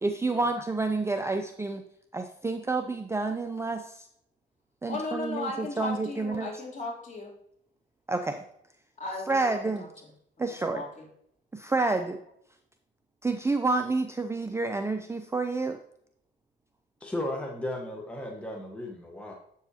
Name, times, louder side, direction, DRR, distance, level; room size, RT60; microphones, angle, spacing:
voice 1, 0.0-1.8 2.1-3.8 4.8-6.5 8.1-8.4 9.3-9.8 10.4-10.8 11.6-12.2 13.2-15.8, right 3 dB, 15° right, 6 dB, 0.5 m, -29 dB
voice 2, 4.9-7.3 9.0-9.9 10.4-11.0, left 2 dB, 40° left, -3 dB, 3.1 m, -36 dB
voice 3, 17.0-19.3, left 1 dB, 5° left, 0 dB, 1.2 m, -35 dB
7.8 x 7.2 x 2.8 m, 0.72 s
cardioid pair, 90°, 20 cm